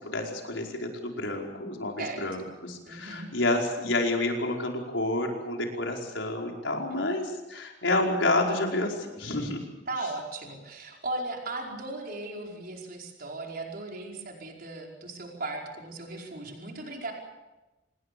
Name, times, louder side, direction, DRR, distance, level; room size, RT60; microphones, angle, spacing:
voice 1, 0.0-9.6, left 2 dB, 90° left, 1 dB, 5.1 m, -29 dB
voice 2, 2.0-2.5 2.8-3.3 6.9-7.0 9.9-17.1, right 2 dB, 55° right, 0 dB, 5.1 m, -37 dB
27.0 x 20.0 x 7.0 m, 1.1 s
head